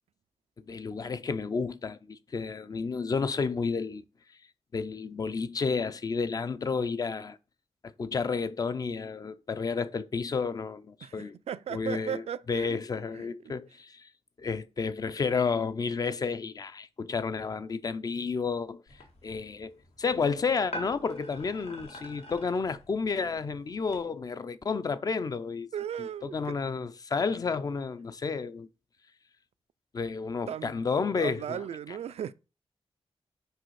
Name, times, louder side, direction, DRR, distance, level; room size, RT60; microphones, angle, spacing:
voice 1, 0.6-4.0 4.7-7.4 7.8-11.4 11.7-12.2 12.5-14.1 14.4-25.7 26.0-28.7 29.9-31.6, left 5 dB, 35° left, 0.5 m, -31 dB
voice 2, 11.0-12.8 13.1-13.3 25.7-26.6 30.5-30.8 31.2-32.3, right 9 dB, 85° right, 0.4 m, -36 dB
sound 1, 18.9-24.0, equal, 85° left, 1.9 m, -46 dB
6.3 x 5.0 x 4.7 m
wide cardioid pair, 175°, 10 cm